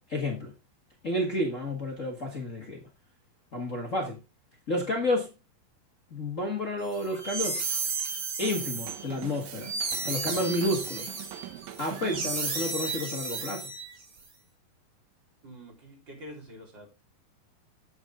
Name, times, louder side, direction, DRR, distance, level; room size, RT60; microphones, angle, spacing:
voice 1, 0.1-0.5 1.0-2.8 3.5-4.2 4.7-5.3 6.1-7.6 8.4-9.7 10.0-11.1 11.8-13.7, left 1 dB, 85° left, 0.6 m, -30 dB
sound 1, 6.9-14.2, right 4 dB, 50° right, 4.2 m, -33 dB
Drum kit / Drum, 8.4-12.8, right 11 dB, 75° right, 2.7 m, -43 dB
voice 2, 15.4-16.9, equal, 30° right, 4.3 m, -46 dB
9.2 x 8.1 x 3.7 m
omnidirectional pair, 4.1 m